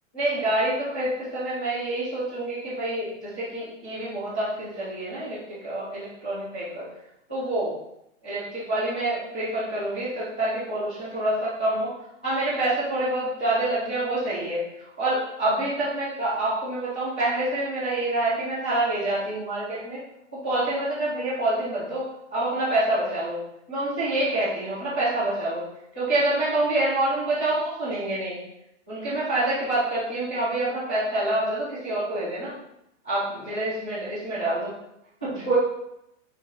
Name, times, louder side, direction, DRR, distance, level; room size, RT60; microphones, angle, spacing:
voice 1, 0.1-5.4 5.6-6.9 7.3-7.7 8.2-11.9 12.2-14.6 15.0-20.0 20.4-22.1 22.3-23.4 23.7-25.6 25.9-28.4 28.9-32.5 33.0-34.7 35.2-35.5, right 1 dB, 5° left, -19 dB, 0.4 m, -27 dB
6.4 x 4.4 x 3.7 m, 0.82 s
hypercardioid pair, 175°, 39 cm